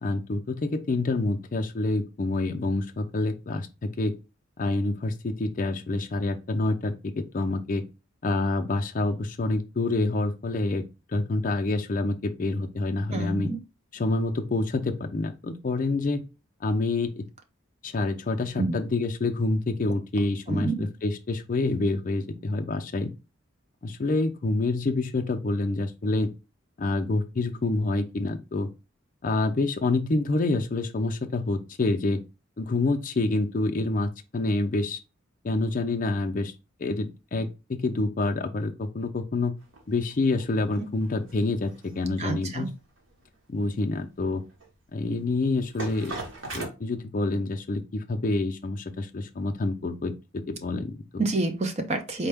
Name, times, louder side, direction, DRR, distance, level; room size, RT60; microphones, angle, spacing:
voice 1, 0.0-4.1 4.6-7.8 8.2-10.8 11.1-13.5 13.9-16.2 16.6-17.3 17.8-23.1 23.8-26.3 26.8-28.7 29.2-32.2 32.6-35.0 35.4-36.5 36.8-39.6 39.9-42.7 43.5-44.4 44.9-46.2 46.5-51.3, left 2 dB, 40° left, 0.4 m, -27 dB
voice 2, 13.1-13.6 18.6-18.8 20.5-20.9 42.2-42.7 51.2-52.3, right 2 dB, 35° right, 0.5 m, -28 dB
sound 1, 39.6-46.7, right 3 dB, 80° right, 1.1 m, -41 dB
4.2 x 2.2 x 3.4 m
head